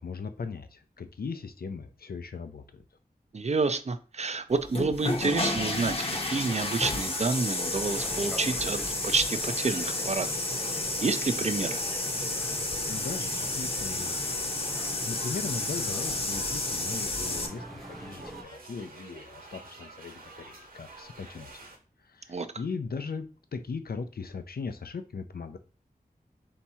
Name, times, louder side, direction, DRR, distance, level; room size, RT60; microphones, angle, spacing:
voice 1, 0.0-2.8 12.9-14.4 14.8-21.7 22.0-25.6, left 5 dB, 75° left, 8 dB, 0.5 m, -39 dB
voice 2, 3.3-10.3 10.7-11.8 22.3-22.5, right 4 dB, 45° right, 10 dB, 0.5 m, -29 dB
sound 1, 4.6-17.5, left 2 dB, 35° left, 0.9 m, -31 dB
sound 2, 7.7-18.4, equal, ahead, 0.7 m, -44 dB
sound 3, 7.8-21.8, right 2 dB, 65° right, 1.3 m, -48 dB
3.5 x 2.9 x 4.2 m, 0.36 s
wide cardioid pair, 50°, 16 cm